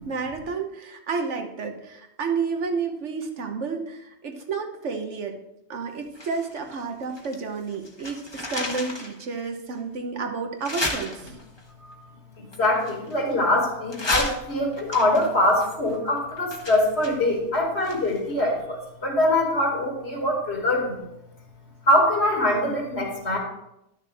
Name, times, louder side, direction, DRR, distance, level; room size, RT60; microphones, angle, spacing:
voice 1, 0.0-5.4 5.7-11.3, right 4 dB, 85° right, 4 dB, 1.4 m, -31 dB
sound 1, 6.1-7.4 7.7-9.2 9.7-9.8 10.6-11.6 12.5-13.5 13.9-18.3 18.6-18.7, left 2 dB, 25° left, 1.0 m, -33 dB
voice 2, 12.4-21.0 21.9-23.4, left 1 dB, 65° left, -1 dB, 2.5 m, -23 dB
11.0 x 6.5 x 3.5 m, 0.84 s
omnidirectional pair, 1.2 m